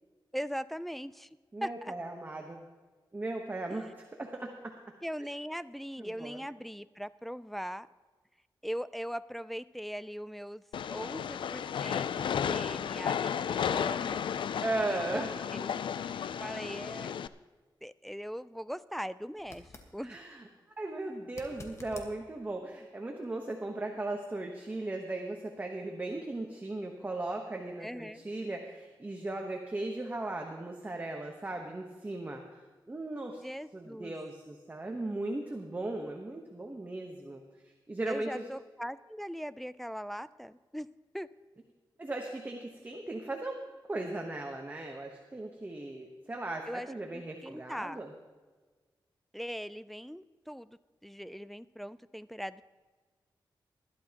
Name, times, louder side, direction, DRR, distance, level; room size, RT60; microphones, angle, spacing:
voice 1, 0.3-1.9 3.7-3.9 5.0-7.9 8.6-10.6 10.9-14.2 14.9-15.3 15.5-15.9 16.4-17.1 17.8-20.2 27.8-28.2 33.4-34.2 38.1-40.9 41.1-41.3 46.7-46.9 47.1-48.0 49.3-52.6, equal, ahead, 14 dB, 0.3 m, -40 dB
voice 2, 1.5-2.6 3.1-4.8 6.0-6.4 14.6-15.3 16.5-16.6 20.0-20.4 20.8-33.4 33.7-38.4 42.0-43.6 43.9-48.1, right 2 dB, 20° right, 2 dB, 1.1 m, -37 dB
Train, 10.7-17.3, left 8 dB, 80° left, 0.4 m, -33 dB
sound 1, 19.4-19.9 21.3-22.1 25.1-25.2, left 2 dB, 35° left, 1.4 m, -49 dB
20.0 x 11.5 x 2.9 m, 1.4 s
wide cardioid pair, 130°, 8 cm